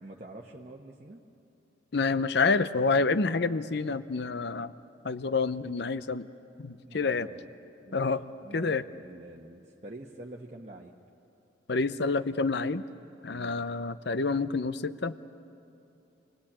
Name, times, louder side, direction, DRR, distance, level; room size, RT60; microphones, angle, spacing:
voice 1, 0.0-1.2 6.8-7.5 7.8-8.0 8.4-10.9 13.3-13.6, right 1 dB, 35° right, -1 dB, 1.1 m, -46 dB
voice 2, 1.9-4.7 5.0-6.3 6.6-7.3 7.9-8.2 8.5-8.8 11.7-12.8 13.2-15.1, left 4 dB, 60° left, 13 dB, 0.7 m, -28 dB
28.0 x 20.0 x 8.7 m, 2.7 s
head